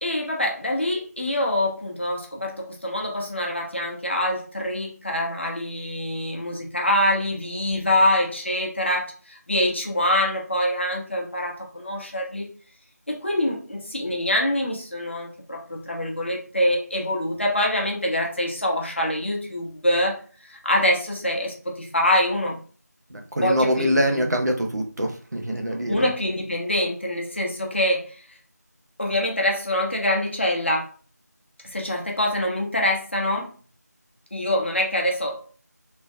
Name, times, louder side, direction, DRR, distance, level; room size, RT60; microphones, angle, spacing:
voice 1, 0.0-12.5 13.1-22.6 23.4-24.2 25.7-28.3 29.0-30.9 31.6-33.5 34.3-35.4, left 1 dB, 45° left, 0 dB, 0.9 m, -25 dB
voice 2, 23.1-26.0, equal, 75° right, 2 dB, 1.0 m, -24 dB
3.3 x 2.2 x 3.2 m, 0.40 s
figure-of-eight pair, 175°, 9 cm